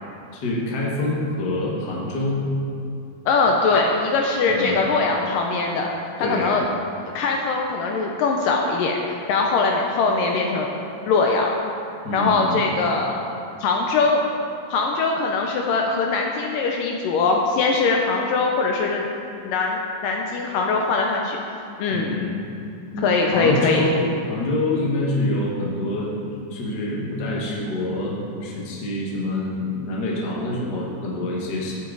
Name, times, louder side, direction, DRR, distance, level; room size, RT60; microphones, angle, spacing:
voice 1, 0.3-2.4 4.5-4.8 6.2-6.6 12.0-12.6 21.9-22.4 22.9-23.0 23.3-26.1 26.5-31.7, left 2 dB, 45° left, -3 dB, 1.3 m, -26 dB
voice 2, 3.3-5.9 6.2-6.6 7.1-10.7 11.1-11.5 12.1-13.3 13.6-14.2 14.7-19.1 19.4-21.4 21.8-22.2 23.0-23.9, left 4 dB, 75° left, 1 dB, 2.1 m, -21 dB
12.5 x 8.6 x 3.9 m, 2.6 s
omnidirectional pair, 4.3 m